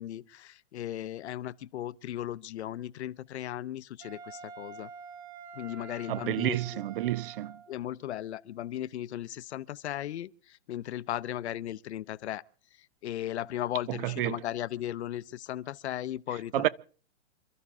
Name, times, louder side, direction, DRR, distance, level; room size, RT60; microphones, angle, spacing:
voice 1, 0.0-4.9 5.5-6.8 7.7-12.4 12.8-16.7, left 12 dB, 65° left, 0.8 m, -36 dB
Wind instrument woodwind instrument, 4.0-7.8, right 6 dB, 25° right, 1.4 m, -47 dB
voice 2, 6.1-7.5 13.9-14.3 16.5-16.7, right 14 dB, 50° right, 0.8 m, -29 dB
28.0 x 13.5 x 3.7 m
hypercardioid pair, 135°, 36 cm